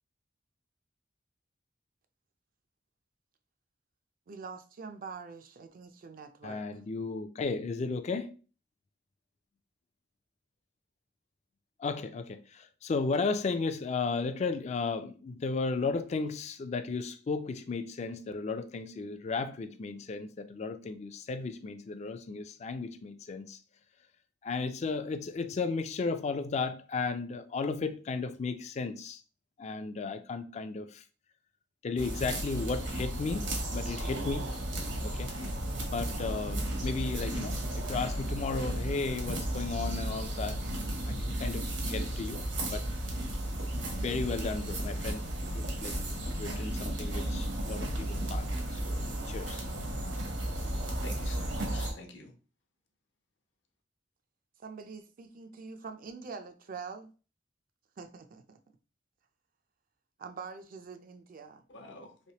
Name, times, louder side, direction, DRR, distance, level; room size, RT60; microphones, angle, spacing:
voice 1, 4.3-6.8 54.6-57.1 58.0-58.6 60.2-61.6, right 5 dB, 50° right, 0.4 m, -45 dB
voice 2, 6.4-8.3 11.8-23.6 24.4-29.2 29.6-31.0 31.8-34.5 35.0-35.3 35.8-40.6 41.1-42.9 43.7-45.3 45.5-49.0 49.3-49.6, left 4 dB, 35° left, 0.3 m, -34 dB
sound 1, 32.0-51.9, right 1 dB, 75° right, 1.1 m, -34 dB
voice 3, 51.0-52.3 61.7-62.3, left 2 dB, 75° left, 0.7 m, -47 dB
3.3 x 3.0 x 2.8 m
head